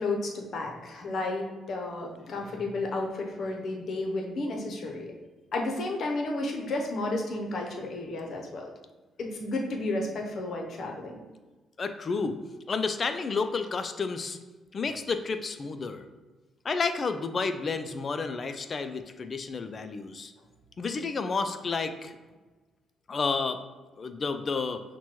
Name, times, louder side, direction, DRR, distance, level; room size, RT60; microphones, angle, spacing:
voice 1, 0.0-5.1 5.5-8.7 9.2-11.2, left 2 dB, 60° left, 1 dB, 0.7 m, -32 dB
voice 2, 11.8-12.4 12.7-14.4 14.7-16.1 16.6-20.3 20.8-22.2 23.1-23.6 24.0-24.8, left 4 dB, 40° left, 9 dB, 0.3 m, -31 dB
5.8 x 2.2 x 3.0 m, 1.2 s
cardioid pair, 90°, 0 cm